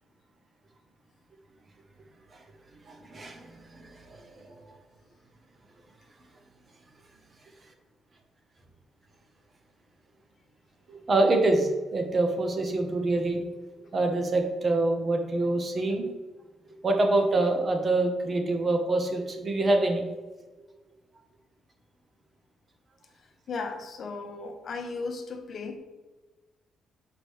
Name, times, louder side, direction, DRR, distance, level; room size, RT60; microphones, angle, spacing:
voice 1, 2.9-3.5 3.7-4.4 10.9-13.4 13.9-16.1 16.8-20.0, right 2 dB, 40° right, 4 dB, 1.1 m, -25 dB
voice 2, 23.5-25.8, left 4 dB, 50° left, 5 dB, 1.0 m, -35 dB
6.6 x 4.8 x 3.3 m, 1.2 s
cardioid pair, 90°, 0 cm